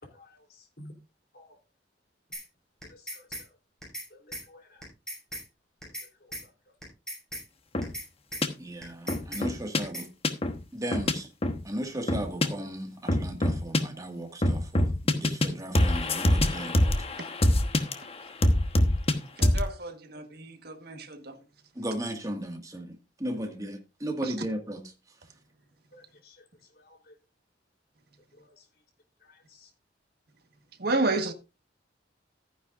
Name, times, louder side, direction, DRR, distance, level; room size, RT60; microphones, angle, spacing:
voice 1, 0.0-0.9 1.3-1.6 2.8-3.5 4.1-4.8 6.0-6.5 25.9-26.4 26.7-27.1 28.3-28.7 29.2-29.7, left 1 dB, 60° left, 3.6 m, -54 dB
sound 1, 2.3-2.4 2.8-3.4 3.8-4.1 4.3-4.4 4.8-5.4 5.8-6.1 6.3-6.4 6.8-7.4 7.8-8.1 8.3-8.4 8.8-9.4 9.8-10.1, equal, 5° left, 6.6 m, -38 dB
sound 2, 7.7-7.9 8.4-8.5 9.1-9.8 10.2-10.5 10.9-11.1 11.4-11.6 12.1-12.5 13.1-13.8 14.4-15.5 15.7-17.9 18.4-19.1 19.4-19.7, left 1 dB, 35° left, 1.2 m, -24 dB
voice 2, 8.6-10.1 10.7-11.3 11.6-16.9 21.8-24.9, right 1 dB, 20° right, 1.9 m, -36 dB
voice 3, 19.4-21.4 30.8-31.3, right 2 dB, 60° right, 1.5 m, -31 dB
14.5 x 9.8 x 2.6 m
head